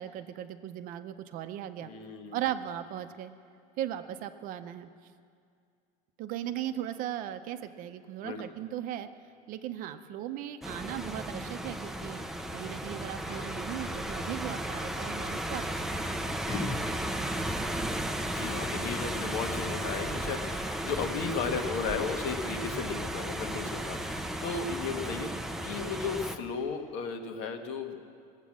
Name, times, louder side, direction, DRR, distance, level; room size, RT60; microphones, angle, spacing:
voice 1, 0.0-1.9 2.3-3.3 3.8-4.9 6.2-9.1 9.5-16.6, right 11 dB, 45° right, 10 dB, 0.6 m, -38 dB
voice 2, 1.8-2.4 8.2-8.4 18.2-28.0, left 5 dB, 65° left, 5 dB, 1.5 m, -35 dB
sound 1, 10.6-26.4, right 1 dB, ahead, 0.5 m, -34 dB
Yell, 12.6-18.1, left 3 dB, 15° left, 0.9 m, -44 dB
18.5 x 8.3 x 7.3 m, 2.3 s
cardioid pair, 155°, 19 cm